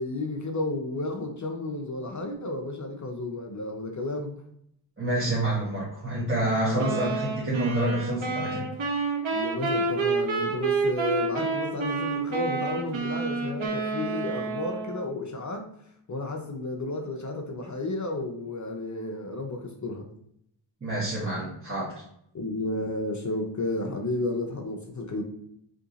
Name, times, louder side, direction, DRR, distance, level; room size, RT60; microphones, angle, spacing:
voice 1, 0.0-4.4 6.7-7.1 9.3-15.7 16.1-20.1 22.3-25.2, left 2 dB, 40° left, 2 dB, 0.5 m, -32 dB
voice 2, 5.0-8.6 20.8-22.0, right 2 dB, 25° right, -7 dB, 1.1 m, -28 dB
sound 1, 6.8-15.1, right 3 dB, 75° right, 0.8 m, -29 dB
2.9 x 2.6 x 3.8 m, 0.73 s
wide cardioid pair, 80°, 48 cm